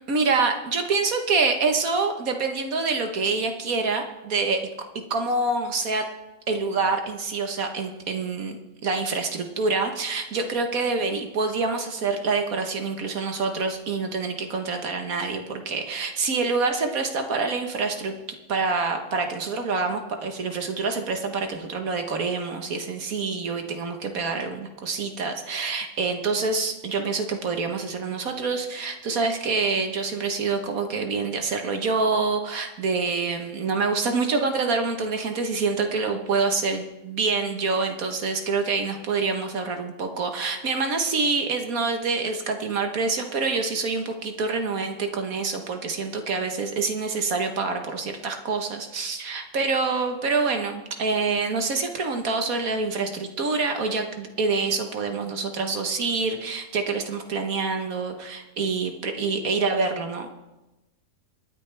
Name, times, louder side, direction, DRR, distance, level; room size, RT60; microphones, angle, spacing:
voice 1, 0.1-4.6 5.1-6.1 6.5-18.1 18.5-60.3, right 4 dB, 70° right, 5 dB, 1.7 m, -26 dB
27.5 x 9.3 x 3.4 m, 1.0 s
omnidirectional pair, 1.6 m